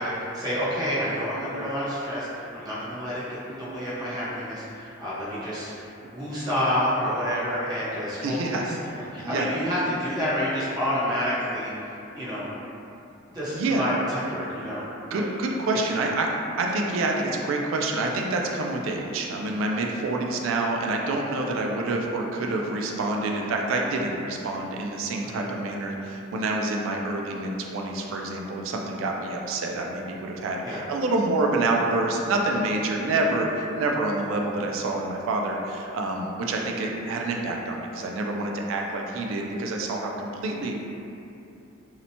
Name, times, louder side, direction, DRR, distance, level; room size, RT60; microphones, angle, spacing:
voice 1, 0.0-5.7 6.0-11.7 12.1-12.5 13.3-15.3 15.7-16.0 25.2-25.4 30.6-30.8, equal, 20° right, -10 dB, 0.7 m, -29 dB
voice 2, 8.2-8.8 9.2-9.5 13.5-13.8 15.1-16.3 16.6-40.7, right 2 dB, 80° right, 1 dB, 0.3 m, -27 dB
2.8 x 2.1 x 2.7 m, 2.7 s
head